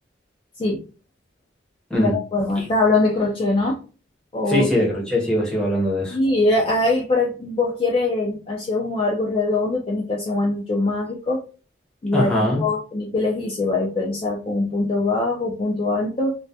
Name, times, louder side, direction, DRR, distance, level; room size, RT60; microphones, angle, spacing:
voice 1, 1.9-3.8 4.3-4.7 6.1-11.4 12.0-16.4, left 2 dB, 30° left, -2 dB, 0.3 m, -22 dB
voice 2, 4.5-6.2 12.1-12.6, left 1 dB, 5° left, -4 dB, 0.7 m, -21 dB
2.2 x 2.1 x 2.6 m, 0.35 s
head